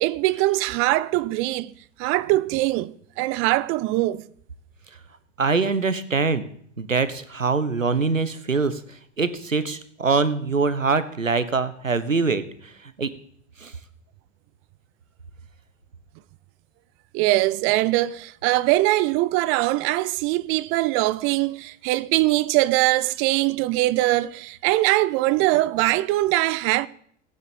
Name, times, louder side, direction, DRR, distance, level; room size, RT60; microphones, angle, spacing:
voice 1, 0.0-1.7 2.0-4.2 17.1-26.9, right 18 dB, 35° right, 0.6 m, -22 dB
voice 2, 5.4-6.5 6.8-13.1 13.6-13.8, right 4 dB, 85° right, 1.3 m, -24 dB
17.5 x 9.4 x 7.1 m
figure-of-eight pair, 85°, 38 cm